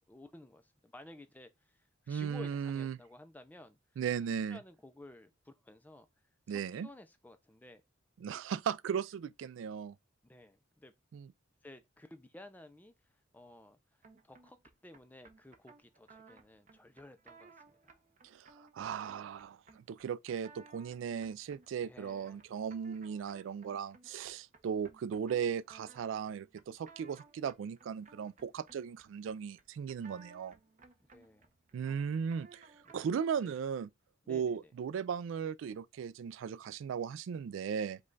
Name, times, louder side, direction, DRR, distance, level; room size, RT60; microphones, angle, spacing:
voice 1, 0.1-3.8 4.5-6.1 6.5-7.8 10.3-10.9 11.6-12.9 13.3-13.8 14.2-17.5 17.8-18.0 21.8-22.4 31.1-31.5 33.4-33.5 34.3-34.7, left 1 dB, 10° left, 0.4 m, -54 dB
voice 2, 2.1-3.0 4.0-4.6 6.5-6.9 8.2-10.0 11.1-11.3 18.2-30.6 31.7-33.9 34.3-38.0, right 7 dB, 70° right, 0.3 m, -37 dB
sound 1, 14.0-33.2, right 4 dB, 40° right, 0.7 m, -60 dB
5.2 x 2.3 x 3.8 m
head